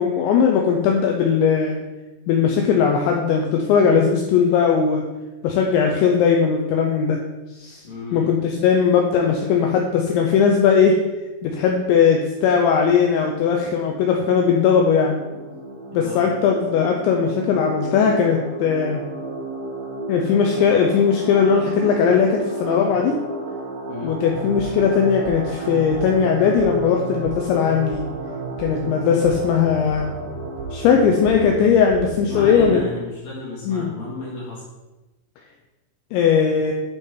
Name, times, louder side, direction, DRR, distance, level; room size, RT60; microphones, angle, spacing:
voice 1, 0.0-1.8 2.3-5.0 5.4-7.2 7.5-7.8 8.1-11.0 11.4-15.2 15.9-19.0 20.1-23.2 24.0-28.0 28.6-30.1 30.7-32.8 33.7-33.9 36.1-36.7, left 6 dB, 90° left, 1 dB, 2.6 m, -18 dB
voice 2, 7.8-8.3 15.9-16.2 23.9-24.1 32.2-34.6, left 1 dB, 65° left, -6 dB, 1.7 m, -32 dB
sound 1, 13.1-31.5, right 2 dB, 80° right, 4.8 m, -33 dB
sound 2, 24.3-32.7, right 7 dB, 60° right, 4.7 m, -35 dB
11.0 x 3.7 x 4.4 m, 1.1 s
omnidirectional pair, 6.0 m